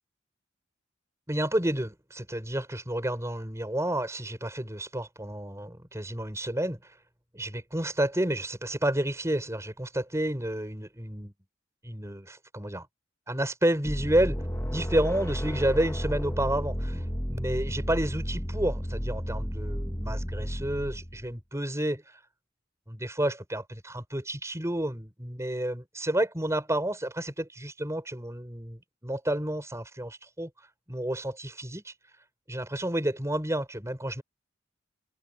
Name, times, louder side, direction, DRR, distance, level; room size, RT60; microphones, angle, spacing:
voice 1, 1.3-6.9 7.3-11.3 11.8-12.9 13.3-22.2 22.9-30.5 30.9-31.9 32.5-34.2, right 1 dB, 15° right, 5.8 m, -30 dB
sound 1, 13.8-21.3, equal, 15° left, 2.0 m, -32 dB
head